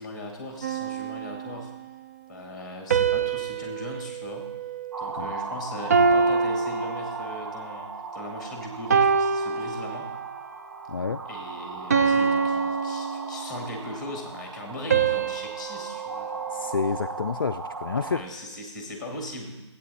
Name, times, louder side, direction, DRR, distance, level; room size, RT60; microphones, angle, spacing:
voice 1, 0.0-1.7 2.3-4.6 5.0-10.2 11.3-16.7 18.0-19.5, left 1 dB, ahead, 2 dB, 1.9 m, -39 dB
sound 1, 0.6-1.9 2.9-5.4 5.9-7.6 8.2-8.4 8.9-10.4 10.9-11.2 11.9-13.8 14.9-17.3, right 5 dB, 35° right, 0.4 m, -26 dB
sound 2, 4.9-18.2, right 4 dB, 70° right, 1.1 m, -38 dB
voice 2, 10.9-11.2 16.5-18.2, left 5 dB, 50° left, 8 dB, 0.4 m, -29 dB
14.0 x 8.4 x 4.1 m, 1.1 s
figure-of-eight pair, 150°, 15 cm